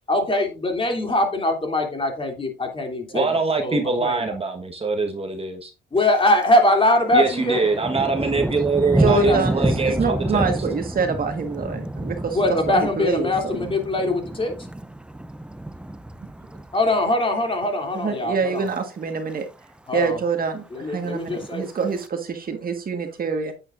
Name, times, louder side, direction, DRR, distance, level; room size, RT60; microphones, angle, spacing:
voice 1, 0.1-3.2 3.6-4.2 5.9-7.6 9.0-9.4 12.3-14.5 16.7-18.7 19.9-20.2 20.7-21.7, left 1 dB, 25° left, 3 dB, 3.0 m, -22 dB
voice 2, 3.1-5.7 7.1-10.5, right 3 dB, 30° right, 4 dB, 1.4 m, -23 dB
Thunder, 6.0-6.5 6.8-17.1 17.5-17.9 18.3-18.8 19.0-19.1 19.3-19.4 19.8-20.4 21.1-22.1, right 1 dB, 5° right, 0.5 m, -29 dB
voice 3, 9.0-12.4 12.7-13.7 17.9-19.5 19.9-23.5, right 5 dB, 45° right, 5 dB, 1.6 m, -25 dB
8.9 x 8.8 x 2.6 m, 0.30 s
cardioid pair, 90°, 20 cm